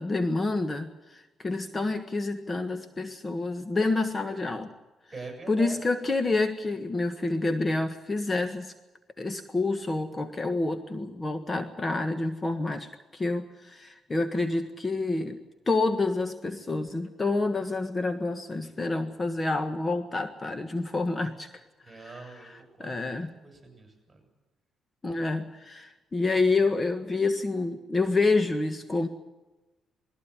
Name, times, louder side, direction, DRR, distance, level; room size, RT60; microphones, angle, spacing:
voice 1, 0.0-4.7 5.5-8.7 9.2-15.4 15.7-21.5 21.9-23.3 25.0-29.1, left 3 dB, 25° left, 8 dB, 1.5 m, -28 dB
voice 2, 5.1-5.8 21.8-24.2, right 3 dB, 25° right, 4 dB, 7.4 m, -44 dB
20.0 x 15.0 x 10.0 m, 1.1 s
cardioid pair, 90°, 0 cm